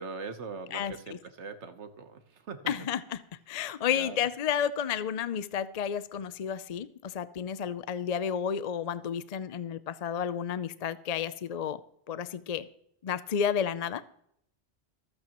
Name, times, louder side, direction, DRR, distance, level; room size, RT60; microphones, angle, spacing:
voice 1, 0.0-2.6 3.9-4.2, right 4 dB, 75° right, 8 dB, 1.4 m, -41 dB
voice 2, 2.7-3.2 3.5-11.8 12.1-12.7 13.0-14.0, left 8 dB, 50° left, 14 dB, 0.5 m, -31 dB
24.5 x 8.8 x 3.0 m, 0.72 s
omnidirectional pair, 1.2 m